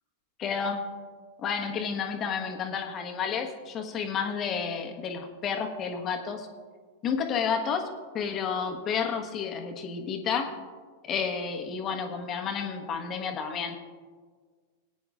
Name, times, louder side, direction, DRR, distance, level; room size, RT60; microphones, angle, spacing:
voice 1, 0.4-0.9 1.4-6.5 7.0-10.5 11.0-13.8, left 6 dB, 30° left, 4 dB, 1.2 m, -31 dB
20.0 x 9.4 x 2.5 m, 1.5 s
figure-of-eight pair, 90°, 0 cm